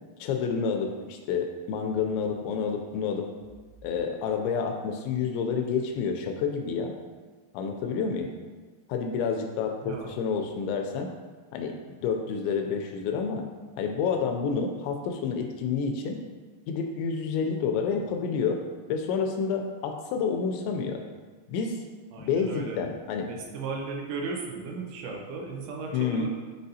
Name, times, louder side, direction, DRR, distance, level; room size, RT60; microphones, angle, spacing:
voice 1, 0.2-3.3 3.8-7.0 7.5-8.3 8.9-11.1 11.5-11.8 12.0-13.5 13.8-16.2 16.7-18.6 18.9-21.0 21.5-21.8 22.2-23.3 25.9-26.3, left 6 dB, 80° left, 4 dB, 2.7 m, -29 dB
voice 2, 9.8-10.1 22.1-22.8 23.3-26.3, right 4 dB, 80° right, 0 dB, 3.1 m, -36 dB
10.5 x 4.1 x 2.7 m, 1.4 s
omnidirectional pair, 5.5 m